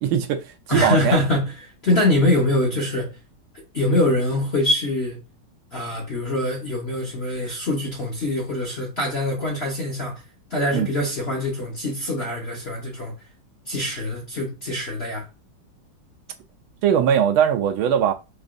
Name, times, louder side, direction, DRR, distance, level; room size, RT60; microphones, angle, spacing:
voice 1, 0.0-1.2 10.7-10.9 16.8-18.1, right 9 dB, 85° right, 1.4 m, -20 dB
voice 2, 0.7-3.1 3.7-5.2 5.7-10.2 10.5-13.1 13.7-15.3, left 1 dB, 45° left, 0.9 m, -24 dB
4.8 x 2.6 x 2.4 m
omnidirectional pair, 2.3 m